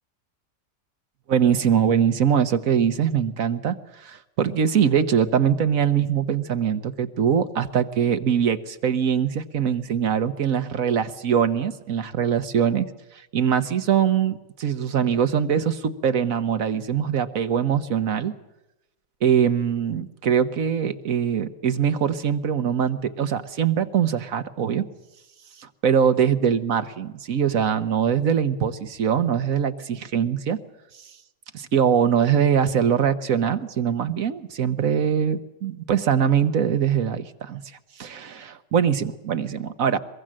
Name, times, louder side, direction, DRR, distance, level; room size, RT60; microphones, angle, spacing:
voice 1, 1.3-12.9 13.3-18.3 19.2-24.9 25.6-30.6 31.5-37.6 38.0-40.0, right 8 dB, 55° right, 10 dB, 1.4 m, -22 dB
23.0 x 22.0 x 7.6 m, 0.94 s
omnidirectional pair, 1.8 m